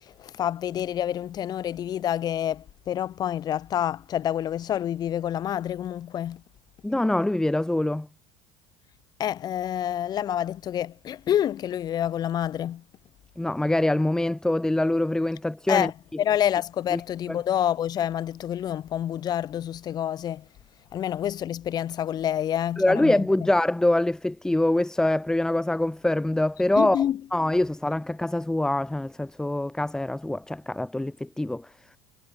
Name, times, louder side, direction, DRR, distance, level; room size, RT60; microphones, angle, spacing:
voice 1, 0.0-6.4 9.2-12.8 15.7-20.4 20.9-23.3 26.8-27.2, left 10 dB, 35° left, 1.0 m, -28 dB
voice 2, 6.8-8.1 13.4-15.9 16.9-17.0 17.3-17.4 22.8-27.0 27.3-31.7, left 1 dB, 5° left, 2.0 m, -24 dB
supercardioid pair, 125°, 11 cm